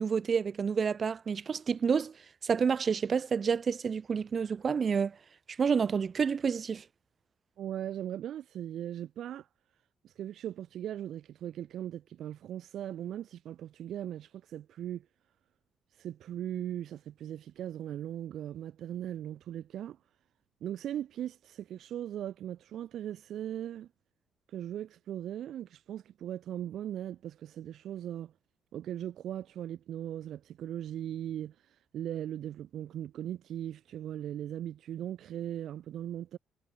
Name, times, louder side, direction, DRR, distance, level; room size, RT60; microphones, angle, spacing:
voice 1, 0.0-2.1 2.4-5.1 5.6-6.8, right 6 dB, 45° right, 1.3 m, -29 dB
voice 2, 7.6-9.5 10.0-15.1 16.0-20.0 20.6-23.9 24.5-28.3 28.7-36.4, right 11 dB, 70° right, 1.7 m, -39 dB
cardioid pair, 90°, 0 cm